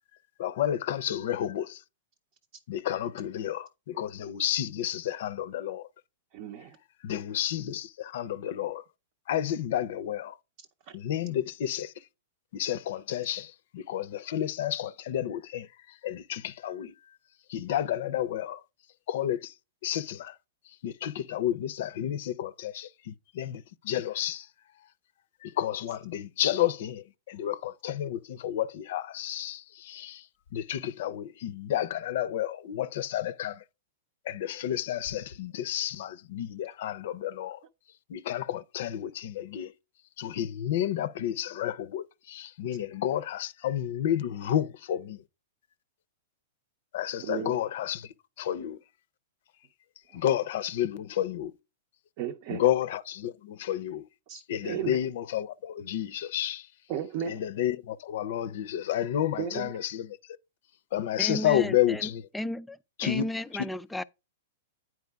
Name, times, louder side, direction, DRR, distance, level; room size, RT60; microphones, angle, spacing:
voice 1, 0.4-1.8 2.7-5.9 7.0-8.8 9.3-10.3 10.9-11.9 12.5-15.7 16.0-16.9 17.5-18.6 19.1-19.5 19.8-20.3 20.8-24.5 25.4-30.2 30.5-33.6 34.3-37.6 38.1-39.7 40.2-45.2 46.9-48.1 48.4-48.8 50.1-51.5 52.5-54.0 54.5-56.7 57.3-60.1 60.9-62.2 63.0-63.2, left 11 dB, 65° left, 0.6 m, -31 dB
voice 2, 6.3-6.8 10.9-11.0 47.2-47.6 50.1-50.2 52.2-52.7 54.3-55.0 56.9-57.5 59.4-59.7, right 9 dB, 45° right, 0.7 m, -35 dB
voice 3, 61.2-64.0, left 1 dB, 5° left, 0.3 m, -34 dB
9.5 x 4.7 x 3.5 m
hypercardioid pair, 145°, 0 cm